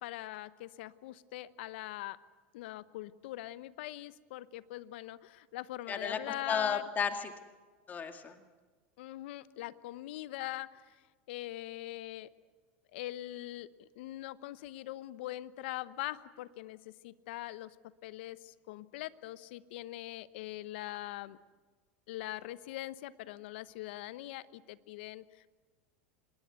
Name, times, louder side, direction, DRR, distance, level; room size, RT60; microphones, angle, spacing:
voice 1, 0.0-2.2 2.5-6.8 9.0-11.0 11.3-12.3 12.9-17.8 18.0-21.4 22.1-25.5, left 16 dB, 70° left, 16 dB, 1.0 m, -42 dB
voice 2, 5.9-7.3 7.9-8.4, left 6 dB, 30° left, 6 dB, 2.1 m, -34 dB
27.0 x 21.0 x 8.2 m, 1.4 s
hypercardioid pair, 100°, 6 cm